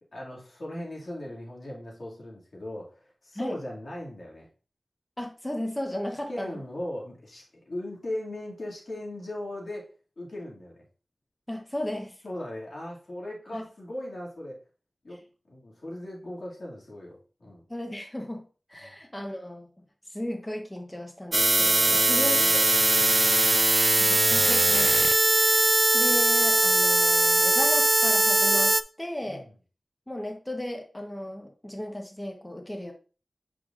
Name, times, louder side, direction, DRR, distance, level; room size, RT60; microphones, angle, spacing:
voice 1, 0.1-4.5 6.3-10.9 12.2-14.6 15.0-15.2 15.5-17.7 18.8-19.0 21.8-23.5 29.2-29.5, left 1 dB, 75° left, -3 dB, 2.3 m, -39 dB
voice 2, 5.2-6.5 11.5-12.2 13.5-13.6 17.7-18.4 18.7-19.7 20.1-22.7 24.0-29.4 30.1-32.9, left 1 dB, 15° left, 3 dB, 1.1 m, -35 dB
sound 1, 21.3-28.8, right 2 dB, 40° right, 0.4 m, -21 dB
8.0 x 4.9 x 2.5 m, 0.36 s
wide cardioid pair, 50°, 0 cm